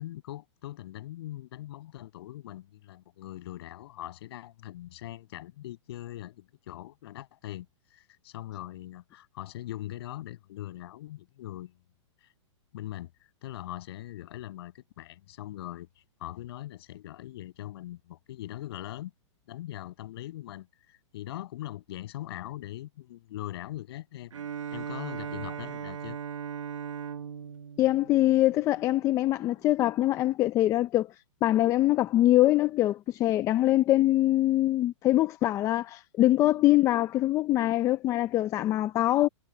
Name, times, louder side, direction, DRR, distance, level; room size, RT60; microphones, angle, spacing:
voice 1, 0.0-11.7 12.7-13.1 13.4-15.9 16.2-19.1 19.5-24.3 24.7-26.2, left 14 dB, 55° left, 6.9 m, -41 dB
Bowed string instrument, 24.3-29.0, right 8 dB, 90° right, 2.3 m, -38 dB
voice 2, 27.8-31.1 31.4-39.3, left 15 dB, 20° left, 0.6 m, -23 dB
hypercardioid pair, 155°, 16 cm